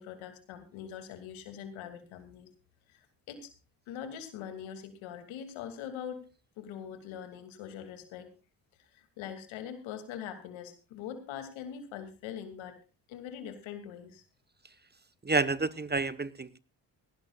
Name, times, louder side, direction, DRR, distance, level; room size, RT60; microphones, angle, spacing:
voice 1, 0.0-2.5 2.9-3.5 3.9-6.3 6.6-8.3 8.9-12.8 13.1-14.2, left 8 dB, 85° left, 8 dB, 2.7 m, -43 dB
voice 2, 15.2-16.6, right 3 dB, 20° right, 15 dB, 1.2 m, -29 dB
18.0 x 17.0 x 2.4 m, 0.31 s
supercardioid pair, 50°, 46 cm